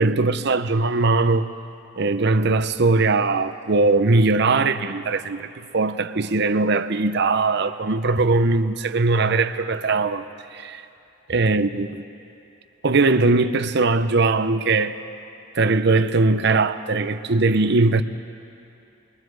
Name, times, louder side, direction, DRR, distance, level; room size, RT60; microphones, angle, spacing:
voice 1, 0.0-1.5 2.0-10.2 10.5-10.8 11.3-12.0 12.8-15.0 15.5-18.0, right 3 dB, 55° right, 0.7 m, -20 dB
29.0 x 21.5 x 4.8 m
head